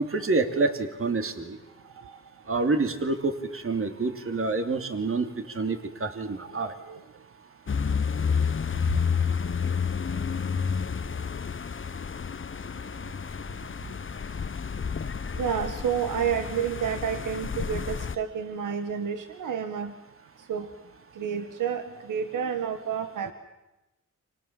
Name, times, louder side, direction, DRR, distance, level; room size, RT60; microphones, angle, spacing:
voice 1, 0.0-1.6 2.5-5.3 5.5-6.7, right 3 dB, 45° right, 7 dB, 3.0 m, -27 dB
voice 2, 1.8-2.2 6.4-7.0 7.9-8.0 15.3-19.9 20.4-20.7 21.1-23.3, right 7 dB, 90° right, 8 dB, 1.6 m, -30 dB
sound 1, 7.7-18.2, left 6 dB, 40° left, 1.1 m, -30 dB
30.0 x 26.0 x 7.5 m, 0.99 s
cardioid pair, 55°, 30 cm